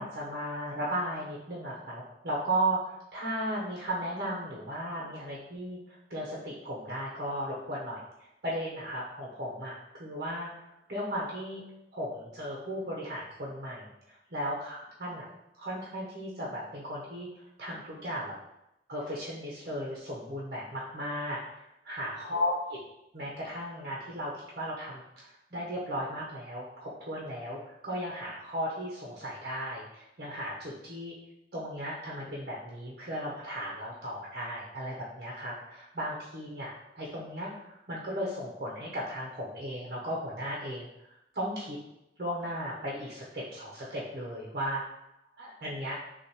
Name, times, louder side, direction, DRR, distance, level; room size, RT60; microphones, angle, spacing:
voice 1, 0.0-10.5 10.9-11.6 11.9-15.3 15.6-17.3 17.6-18.3 18.9-22.5 23.1-31.1 31.5-40.9 41.3-41.8 42.2-44.8 45.4-46.0, equal, 55° right, -5 dB, 0.9 m, -36 dB
6.5 x 2.5 x 3.0 m, 0.86 s
head